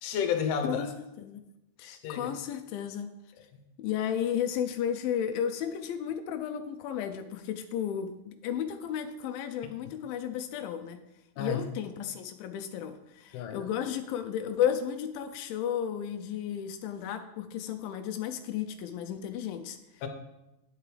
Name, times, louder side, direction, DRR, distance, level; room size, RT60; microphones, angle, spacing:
voice 1, 0.0-0.9 1.8-2.4 11.4-11.6 13.3-13.7 20.0-20.1, left 7 dB, 75° left, 7 dB, 2.4 m, -31 dB
voice 2, 1.8-3.1 3.8-11.0 11.4-20.0, left 9 dB, 90° left, 7 dB, 2.4 m, -33 dB
10.5 x 8.2 x 3.3 m, 0.92 s
omnidirectional pair, 4.0 m